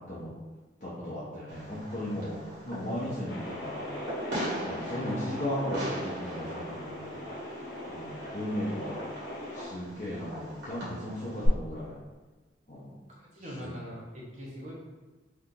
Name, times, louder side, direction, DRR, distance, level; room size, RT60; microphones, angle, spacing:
voice 1, 0.8-3.9 4.6-7.2 7.9-9.0 9.5-12.0 12.7-12.9 13.6-13.7, left 1 dB, 40° left, -9 dB, 0.6 m, -36 dB
Fireworks, 1.5-11.5, right 1 dB, 65° right, 1.3 m, -40 dB
sound 1, 3.3-9.7, left 1 dB, 70° left, 1.0 m, -40 dB
voice 2, 13.1-14.7, equal, 40° right, -5 dB, 0.8 m, -42 dB
2.8 x 2.5 x 3.7 m, 1.2 s
head